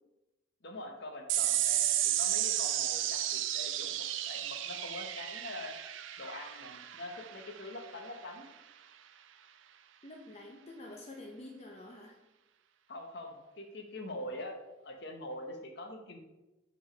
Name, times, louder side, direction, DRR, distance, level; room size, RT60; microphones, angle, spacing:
voice 1, 0.6-5.7 6.2-8.5 12.9-14.6 14.8-16.2, left 1 dB, 55° left, 4 dB, 0.9 m, -44 dB
sound 1, 1.3-8.1, right 12 dB, 75° right, 0.4 m, -33 dB
voice 2, 10.0-12.2, left 1 dB, 30° left, 0 dB, 0.6 m, -48 dB
5.1 x 4.7 x 5.1 m, 1.0 s
head